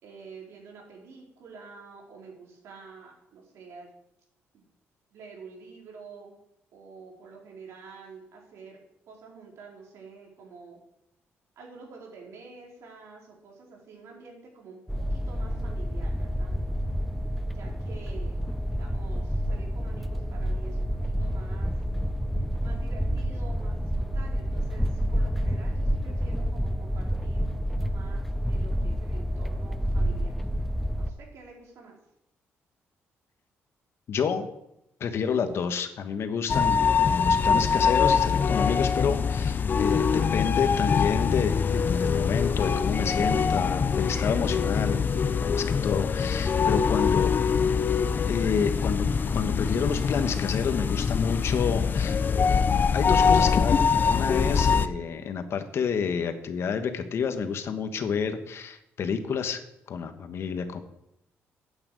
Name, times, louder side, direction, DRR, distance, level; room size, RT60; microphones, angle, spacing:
voice 1, 0.0-3.9 4.5-4.6 5.1-6.3 6.7-8.8 9.1-10.8 11.6-14.8 15.1-16.6 17.5-18.3 18.7-21.8 22.6-27.5 27.8-30.3 31.0-32.0, right 4 dB, 75° right, -1 dB, 4.4 m, -48 dB
sound 1, 14.9-31.1, equal, ahead, 0.7 m, -29 dB
voice 2, 34.1-34.5 35.0-47.3 48.3-52.5 52.9-59.6 59.9-60.8, left 6 dB, 60° left, 8 dB, 1.4 m, -29 dB
sound 2, 36.5-54.9, left 6 dB, 40° left, 0.7 m, -24 dB
8.9 x 8.9 x 7.8 m, 0.83 s
cardioid pair, 95°, 5 cm